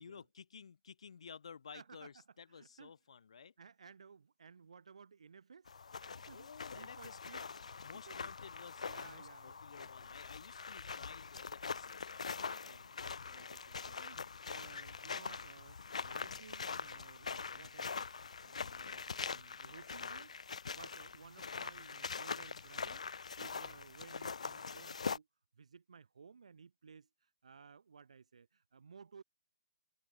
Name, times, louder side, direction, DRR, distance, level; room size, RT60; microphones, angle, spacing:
voice 1, 0.0-3.5 6.3-7.3 7.8-12.2, left 6 dB, 60° left, 0.8 m, -54 dB
voice 2, 1.7-2.1 2.5-2.9 3.6-5.7 6.3-6.5 6.7-7.4 8.1-8.3 8.8-10.2 12.5-18.1 18.4-23.0 23.4-25.3 25.5-29.2, right 5 dB, 65° right, 2.8 m, -58 dB
sound 1, 5.7-25.2, left 5 dB, 80° left, 1.4 m, -43 dB
hypercardioid pair, 170°, 4 cm